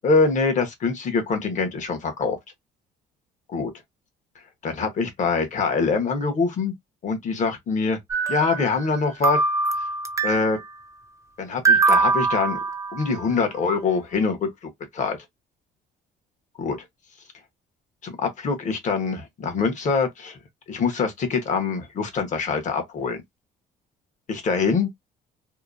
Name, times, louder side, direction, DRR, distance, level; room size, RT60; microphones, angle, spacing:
voice 1, 0.0-2.4 3.5-3.7 4.6-6.7 7.0-8.0 8.3-9.4 10.2-10.6 11.4-12.6 12.9-15.2 16.6-16.8 18.0-20.4 20.7-23.2 24.3-24.9, left 4 dB, 45° left, 1.0 m, -24 dB
sound 1, 8.1-9.0 9.2-10.6 11.7-13.2, right 4 dB, 20° right, 0.5 m, -22 dB
2.8 x 2.2 x 2.4 m
cardioid pair, 110°, 17 cm